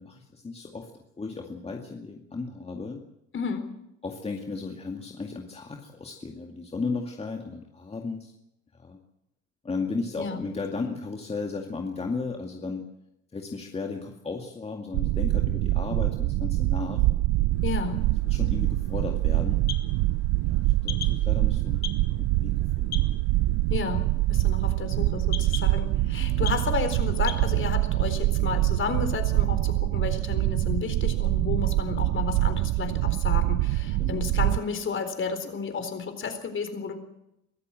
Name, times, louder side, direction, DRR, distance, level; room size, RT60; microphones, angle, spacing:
voice 1, 0.0-3.0 4.0-8.3 8.7-9.0 9.6-12.9 13.3-17.1 18.2-19.6 20.5-21.9 22.2-23.1 26.2-26.5 34.0-34.3, left 4 dB, 20° left, 2 dB, 2.2 m, -35 dB
voice 2, 3.3-3.7 10.2-10.4 17.6-18.0 23.7-24.0 24.3-36.9, left 6 dB, 40° left, 8 dB, 4.0 m, -32 dB
sound 1, 14.9-34.6, right 17 dB, 90° right, 0.7 m, -25 dB
sound 2, 17.5-27.5, left 10 dB, 60° left, 2.0 m, -43 dB
23.5 x 14.5 x 7.7 m, 0.83 s
cardioid pair, 130°, 31 cm